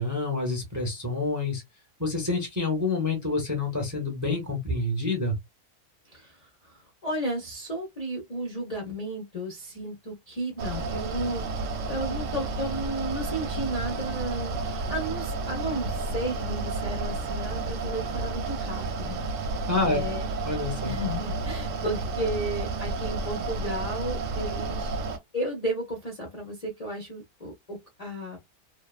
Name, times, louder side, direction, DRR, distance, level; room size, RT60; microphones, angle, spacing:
voice 1, 0.0-1.6 2.0-5.3 19.7-20.0 20.4-20.9, left 3 dB, 20° right, 0.5 m, -27 dB
voice 2, 6.1-11.5 11.9-19.2 19.4-20.2 20.8-25.0 25.3-28.4, right 1 dB, 45° left, 0.5 m, -33 dB
Mechanical fan, 10.6-25.2, right 3 dB, 65° right, 0.8 m, -31 dB
2.7 x 2.1 x 2.3 m
omnidirectional pair, 1.6 m